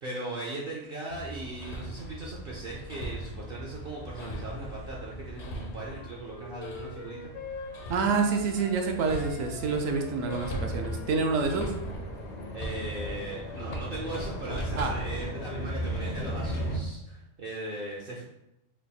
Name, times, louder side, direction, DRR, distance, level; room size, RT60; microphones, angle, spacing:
voice 1, 0.0-7.3 7.6-7.7 12.5-18.2, right 2 dB, 55° right, -3 dB, 0.6 m, -38 dB
Hammer, 1.1-16.8, equal, 50° left, 0.5 m, -37 dB
Wind instrument woodwind instrument, 5.8-8.8 9.1-12.4, left 4 dB, 65° left, 0.9 m, -44 dB
voice 2, 7.9-11.7 14.8-14.9, right 4 dB, 75° right, 3 dB, 1.0 m, -27 dB
3.4 x 2.3 x 4.0 m, 0.86 s
omnidirectional pair, 1.4 m